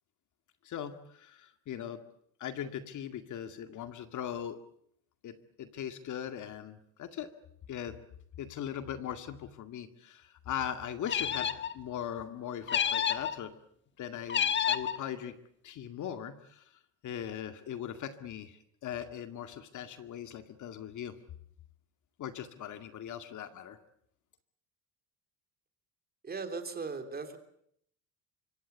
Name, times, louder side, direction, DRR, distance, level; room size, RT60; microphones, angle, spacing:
voice 1, 0.6-2.0 2.4-4.6 5.2-7.3 7.7-8.0 8.4-13.5 14.0-15.4 15.6-16.7 17.0-21.1 22.2-23.8, left 9 dB, 50° left, 9 dB, 2.1 m, -40 dB
sound 1, 11.1-11.7 12.7-13.3 14.3-15.0, left 8 dB, 30° left, 1.5 m, -29 dB
voice 2, 26.2-27.4, right 4 dB, 25° right, 8 dB, 3.3 m, -38 dB
25.5 x 24.5 x 8.1 m, 0.69 s
cardioid pair, 140°, 38 cm